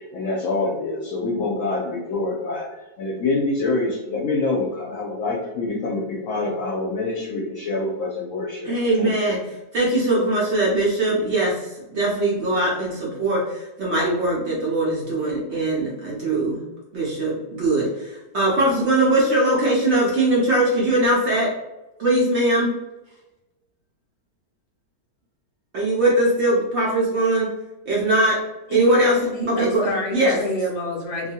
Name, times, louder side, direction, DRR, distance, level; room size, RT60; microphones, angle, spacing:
voice 1, 0.0-8.7 9.0-9.1, left 3 dB, 65° left, -2 dB, 0.9 m, -26 dB
voice 2, 8.6-9.4 9.7-16.6 16.9-21.5 22.0-22.7 25.7-27.5 27.9-28.4 28.7-29.2 29.5-29.9 30.1-30.4, right 1 dB, 65° right, -4 dB, 0.7 m, -21 dB
voice 3, 29.3-31.3, equal, 50° left, -3 dB, 0.4 m, -28 dB
2.7 x 2.3 x 2.7 m, 1.0 s
omnidirectional pair, 1.7 m